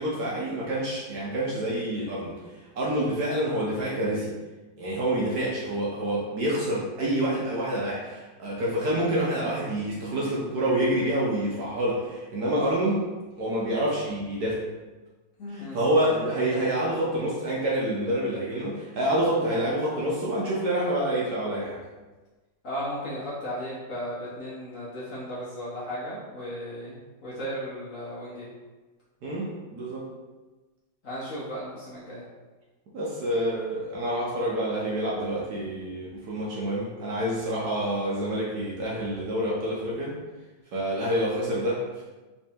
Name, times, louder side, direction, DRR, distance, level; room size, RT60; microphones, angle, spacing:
voice 1, 0.0-2.3 2.7-4.3 4.8-13.0 13.4-14.6 15.5-21.8 29.2-30.1 32.9-40.1 40.7-42.0, right 1 dB, 65° right, -5 dB, 1.1 m, -27 dB
voice 2, 15.4-15.8 22.6-27.0 27.2-28.5 31.0-32.2, equal, 55° left, -8 dB, 1.0 m, -35 dB
3.4 x 3.2 x 2.8 m, 1.2 s
omnidirectional pair, 2.1 m